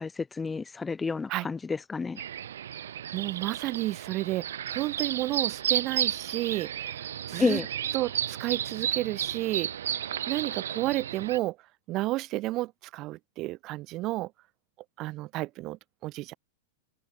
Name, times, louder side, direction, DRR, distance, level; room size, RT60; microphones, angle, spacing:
voice 1, 0.0-2.2 7.4-7.7, left 4 dB, 15° left, 0.8 m, -30 dB
sound 1, 2.2-11.4, right 10 dB, 80° right, 0.4 m, -33 dB
voice 2, 3.1-7.6 7.9-10.0 10.3-11.6 11.9-14.3 15.0-16.3, right 18 dB, 40° right, 1.6 m, -32 dB
hypercardioid pair, 120°, 0 cm